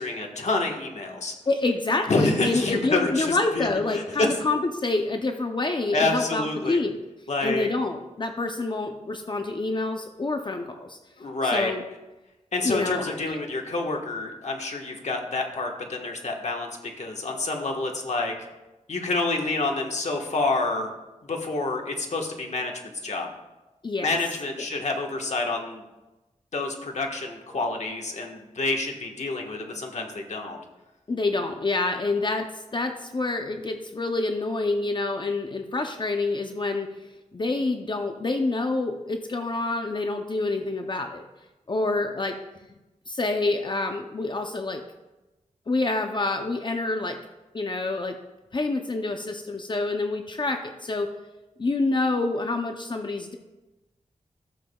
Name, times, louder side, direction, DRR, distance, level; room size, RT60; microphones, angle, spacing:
voice 1, 0.0-1.3 2.1-4.3 5.9-6.8 7.3-7.7 11.2-11.7 12.5-16.7 17.0-18.3 18.9-20.9 21.3-23.3 24.0-25.8 26.5-30.6, left 3 dB, 60° left, 1 dB, 1.4 m, -28 dB
voice 2, 1.5-7.0 7.4-11.0 11.5-11.8 12.6-13.2 23.8-24.1 31.1-32.5 32.7-36.9 37.3-41.2 41.7-42.4 43.1-44.8 45.7-47.2 47.5-48.2 48.5-51.1 51.6-53.4, left 2 dB, 35° left, 5 dB, 0.6 m, -27 dB
14.0 x 7.2 x 2.3 m, 1.0 s
wide cardioid pair, 95°, 13 cm